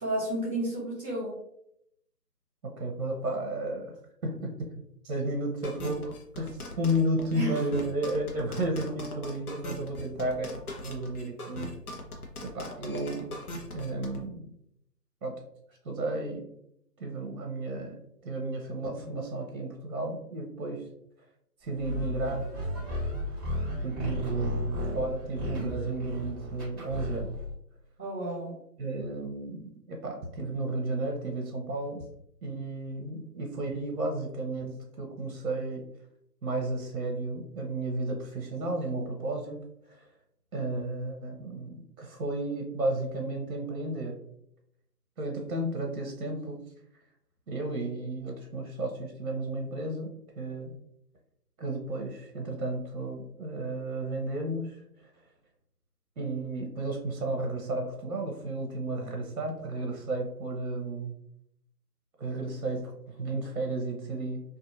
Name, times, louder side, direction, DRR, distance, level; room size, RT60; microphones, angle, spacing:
voice 1, 0.0-1.4 7.3-7.5 28.0-28.6, right 1 dB, 40° right, -5 dB, 1.3 m, -31 dB
voice 2, 2.8-3.9 4.2-4.5 5.0-10.5 10.8-11.8 12.4-13.3 13.7-14.5 15.2-15.3 15.8-16.4 17.0-18.0 18.2-20.9 21.6-22.5 23.8-27.3 28.8-32.0 32.4-35.8 36.4-39.6 39.9-40.0 40.5-44.1 45.2-46.6 47.5-50.7 51.6-55.1 56.2-61.2 62.2-64.4, right 2 dB, 60° right, 2 dB, 0.7 m, -33 dB
sound 1, 5.6-14.2, left 1 dB, 65° left, 0.8 m, -40 dB
sound 2, 21.8-27.5, left 1 dB, 15° left, 1.2 m, -34 dB
2.6 x 2.5 x 2.4 m, 0.75 s
figure-of-eight pair, 155°, 48 cm